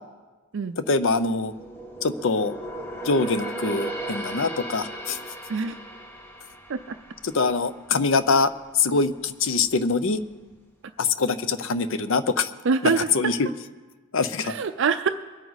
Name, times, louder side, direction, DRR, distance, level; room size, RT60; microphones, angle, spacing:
voice 1, 0.9-1.5 2.0-2.5 3.0-5.2 7.2-8.5 8.7-10.2 11.0-12.5 13.1-13.5 14.1-14.5, left 4 dB, 65° left, 13 dB, 0.6 m, -23 dB
sound 1, 1.0-8.3 8.7-8.9 9.5-10.2 10.5-10.6, right 1 dB, 10° left, 1.4 m, -37 dB
voice 2, 12.6-13.1 14.4-15.1, right 5 dB, 60° right, 9 dB, 0.4 m, -24 dB
23.0 x 9.3 x 4.0 m, 1.3 s
head